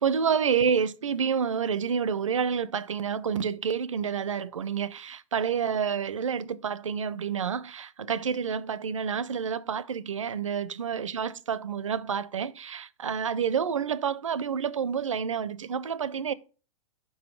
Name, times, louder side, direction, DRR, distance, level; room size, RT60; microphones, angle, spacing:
voice 1, 0.0-16.3, right 7 dB, 75° right, 0.5 m, -29 dB
5.5 x 5.2 x 5.9 m
figure-of-eight pair, 105°, 17 cm